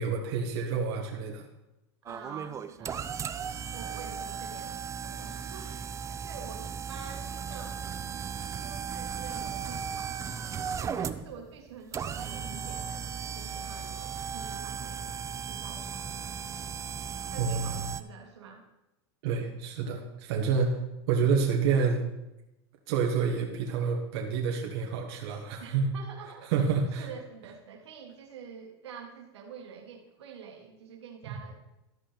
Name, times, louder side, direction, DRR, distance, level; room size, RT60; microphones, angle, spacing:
voice 1, 0.0-1.5 17.4-17.7 19.2-20.8 21.1-22.0 22.9-25.9 26.5-27.1 31.3-31.4, right 5 dB, 65° right, 1 dB, 1.5 m, -28 dB
sound 1, 2.1-18.0, right 7 dB, 20° right, 0.5 m, -36 dB
voice 2, 2.1-3.1 3.7-7.8 8.6-10.2 10.8-15.2 15.5-16.4 17.3-18.6 25.6-26.7 27.0-31.5, right 6 dB, 90° right, 2 dB, 1.8 m, -47 dB
12.5 x 5.5 x 5.1 m, 0.93 s
supercardioid pair, 115°, 14 cm